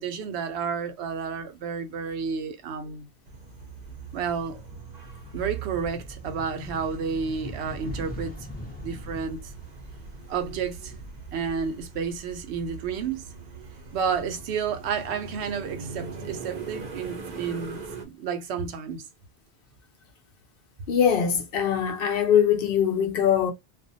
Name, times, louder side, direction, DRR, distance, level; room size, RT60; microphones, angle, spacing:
voice 1, 0.0-3.1 4.1-4.6 5.3-8.3 8.8-9.5 10.3-10.9 11.3-13.2 13.9-17.8 18.0-19.0, right 6 dB, 80° right, 0.9 m, -31 dB
sound 1, 3.2-18.1, right 5 dB, 50° right, 0.6 m, -41 dB
sound 2, 4.4-12.4 12.8-13.9, left 1 dB, 10° left, 0.6 m, -42 dB
voice 2, 20.9-23.5, left 8 dB, 65° left, 0.8 m, -22 dB
2.4 x 2.2 x 2.6 m
omnidirectional pair, 1.1 m